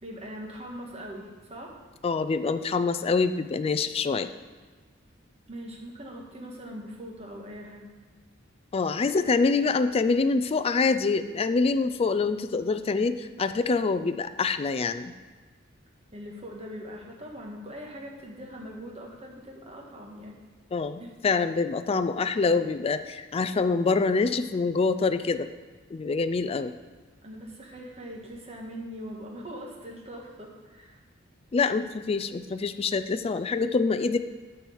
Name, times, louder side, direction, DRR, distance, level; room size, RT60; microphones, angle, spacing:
voice 1, 0.0-1.7 5.5-7.8 16.1-20.3 21.0-21.1 27.2-31.0, equal, 30° right, -1 dB, 1.6 m, -41 dB
voice 2, 2.0-4.3 8.7-15.1 20.7-25.5 25.9-26.7 31.5-34.2, left 4 dB, 30° left, 10 dB, 0.3 m, -25 dB
9.1 x 4.5 x 7.0 m, 1.4 s
head